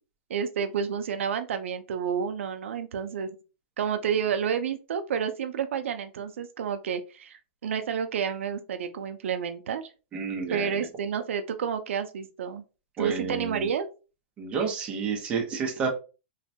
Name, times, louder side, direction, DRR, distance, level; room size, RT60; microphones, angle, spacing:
voice 1, 0.3-3.3 3.8-9.8 10.5-12.6 13.0-13.9, right 7 dB, 85° right, 9 dB, 0.4 m, -30 dB
voice 2, 10.1-10.9 13.0-13.7 14.4-15.9, right 5 dB, 15° right, 1 dB, 0.6 m, -30 dB
3.1 x 2.2 x 2.7 m, 0.32 s
supercardioid pair, 170°, 7 cm